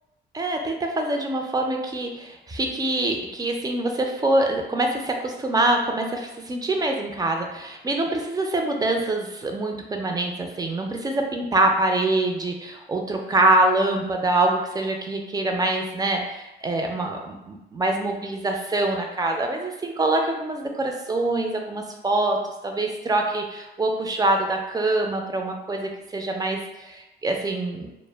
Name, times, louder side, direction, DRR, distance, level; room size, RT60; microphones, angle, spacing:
voice 1, 0.3-27.9, right 2 dB, 20° right, 2 dB, 0.4 m, -25 dB
2.1 x 2.0 x 3.2 m, 0.95 s
cardioid pair, 90°, 20 cm